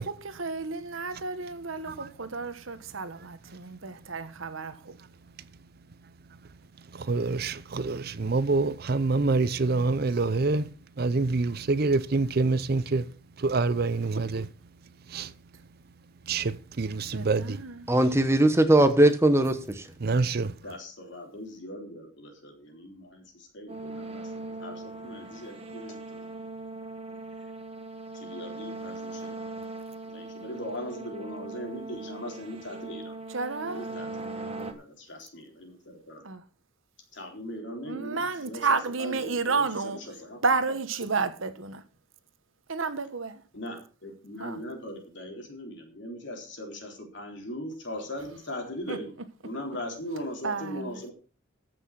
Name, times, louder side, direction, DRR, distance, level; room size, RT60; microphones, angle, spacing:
voice 1, 0.0-5.0 14.3-14.4 17.1-17.7 33.3-33.9 36.2-36.4 37.8-40.0 40.4-41.8 42.7-43.4 44.4-44.6 48.9-49.0 50.4-50.9, right 4 dB, 75° right, 1.2 m, -31 dB
voice 2, 1.8-2.1 2.9-18.1 20.0-20.6, right 3 dB, 50° right, 0.6 m, -29 dB
voice 3, 17.9-19.9, right 1 dB, 15° right, 1.0 m, -20 dB
voice 4, 20.6-26.3 27.3-27.5 28.1-29.4 30.0-33.2 33.6-36.2 37.1-40.4 40.7-40.8 43.5-51.1, left 1 dB, 60° left, 3.8 m, -40 dB
sound 1, 23.7-34.7, right 2 dB, 30° right, 1.3 m, -40 dB
14.0 x 6.2 x 5.9 m
head